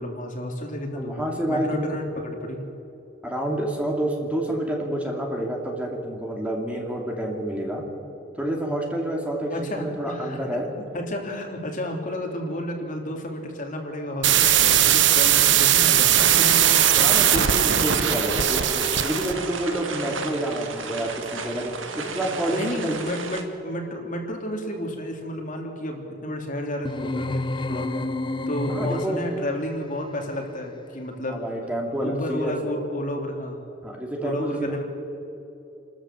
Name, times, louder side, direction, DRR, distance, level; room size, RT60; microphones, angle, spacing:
voice 1, 0.0-2.6 9.5-10.4 10.9-17.7 22.5-27.9 28.5-31.4 32.0-33.6 34.2-34.8, left 1 dB, 45° left, 1 dB, 3.0 m, -31 dB
voice 2, 1.0-1.9 3.2-7.8 8.4-10.7 17.0-22.9 28.7-29.2 31.3-32.5 33.8-34.7, right 1 dB, 5° right, 0 dB, 2.6 m, -28 dB
sound 1, 14.2-19.4, right 11 dB, 65° right, 1.0 m, -19 dB
sound 2, 16.1-23.4, right 4 dB, 90° right, 1.9 m, -31 dB
sound 3, 26.8-29.5, left 2 dB, 25° left, 0.6 m, -29 dB
29.0 x 13.5 x 7.5 m, 3.0 s
head